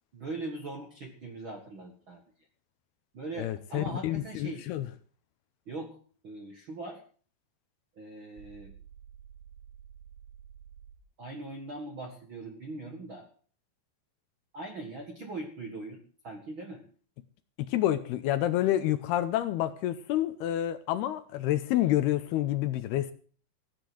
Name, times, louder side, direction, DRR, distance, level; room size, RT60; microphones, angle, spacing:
voice 1, 0.1-2.2 3.1-4.7 5.7-6.0 6.2-7.0 7.9-8.7 11.2-13.3 14.5-16.8, right 2 dB, 50° right, 1.6 m, -40 dB
voice 2, 3.4-4.9 17.7-23.1, left 13 dB, 75° left, 2.6 m, -28 dB
sound 1, 8.4-11.0, right 8 dB, 85° right, 3.9 m, -51 dB
16.0 x 8.9 x 7.7 m
omnidirectional pair, 5.0 m